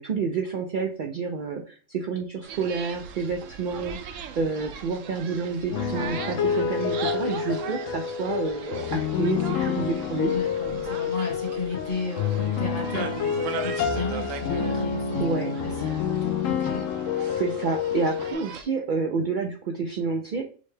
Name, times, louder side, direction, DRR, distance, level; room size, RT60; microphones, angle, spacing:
voice 1, 0.0-10.3 15.2-15.5 17.3-20.5, right 4 dB, 85° right, 3 dB, 0.4 m, -29 dB
sound 1, 2.4-18.6, right 7 dB, 70° right, 0.9 m, -40 dB
sound 2, 5.7-18.3, left 7 dB, 75° left, 1.0 m, -28 dB
voice 2, 10.3-16.9, left 3 dB, 40° left, 2 dB, 1.1 m, -34 dB
6.2 x 2.2 x 3.2 m, 0.40 s
omnidirectional pair, 1.5 m